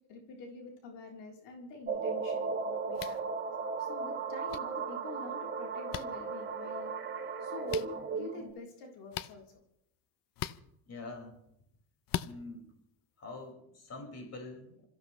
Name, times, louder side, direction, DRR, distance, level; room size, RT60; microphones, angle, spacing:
voice 1, 0.1-3.3 3.8-6.9 7.4-7.9 8.1-9.4, left 3 dB, 85° left, -1 dB, 3.7 m, -47 dB
sound 1, 1.9-8.5, right 5 dB, 30° right, 3.4 m, -36 dB
sound 2, 2.9-3.2 4.5-4.6 5.9-6.0 7.7-7.9 9.1-9.3 10.3-10.6 12.1-12.3, left 13 dB, 55° left, 0.7 m, -37 dB
voice 2, 10.9-11.3 12.2-12.7 13.2-14.9, left 3 dB, 40° left, 1 dB, 5.2 m, -45 dB
27.5 x 14.5 x 3.2 m, 0.75 s
cardioid pair, 130°, 41 cm